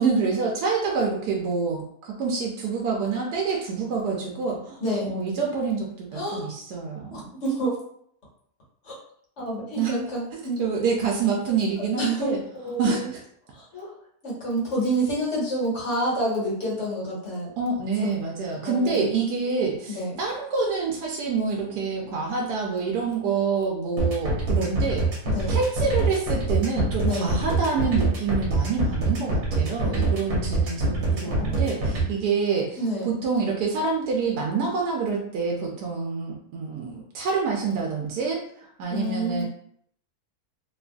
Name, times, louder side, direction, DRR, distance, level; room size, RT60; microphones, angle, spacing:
voice 1, 0.0-4.8 5.0-7.3 9.8-10.0 10.3-12.4 12.8-13.2 17.6-25.1 25.5-32.8 33.0-39.4, right 5 dB, 90° right, -1 dB, 1.1 m, -27 dB
voice 2, 4.8-5.1 6.1-6.5 7.1-7.8 8.8-8.9 9.4-10.7 11.8-13.1 13.5-13.9 14.2-17.5 18.0-18.1 18.6-19.1 19.9-20.2 25.2-25.6 27.0-27.3 29.8-30.2 31.2-31.6 32.8-33.1 38.9-39.4, right 1 dB, 50° left, -6 dB, 1.3 m, -28 dB
sound 1, 24.0-32.0, right 3 dB, 65° right, 1.2 m, -24 dB
2.9 x 2.4 x 2.2 m, 0.67 s
omnidirectional pair, 1.6 m